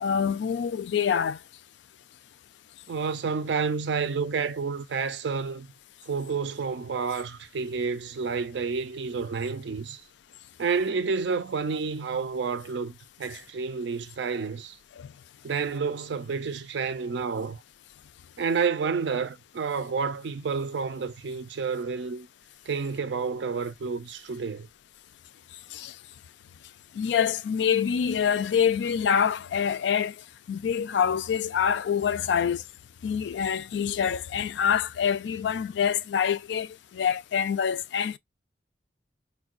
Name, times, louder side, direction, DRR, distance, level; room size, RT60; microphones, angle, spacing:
voice 1, 0.0-1.4 15.0-15.1 25.7-25.9 27.0-30.1 30.5-32.6 33.0-38.2, left 7 dB, 65° left, 0.3 m, -26 dB
voice 2, 2.9-5.7 6.1-10.0 10.6-14.8 15.4-17.6 18.4-22.3 22.7-24.7, right 5 dB, 65° right, 0.4 m, -30 dB
4.4 x 2.2 x 2.4 m
head